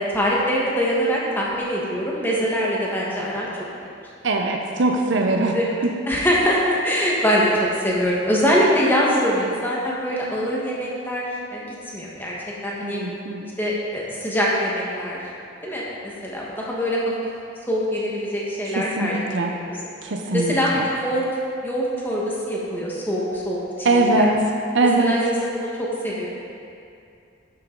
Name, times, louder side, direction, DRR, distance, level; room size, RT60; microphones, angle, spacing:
voice 1, 0.0-3.5 3.8-3.9 5.5-11.6 11.9-12.3 12.6-13.0 13.6-15.2 15.6-15.8 16.2-17.1 17.7-19.2 19.5-19.8 20.3-21.2 21.6-24.3 25.0-26.3, equal, 10° left, -5 dB, 1.5 m, -23 dB
voice 2, 4.2-5.6 5.8-5.9 12.8-13.5 18.7-19.5 20.0-20.9 23.8-24.4 24.7-25.1, right 2 dB, 65° right, 1 dB, 0.7 m, -21 dB
11.0 x 7.7 x 3.9 m, 2.5 s
head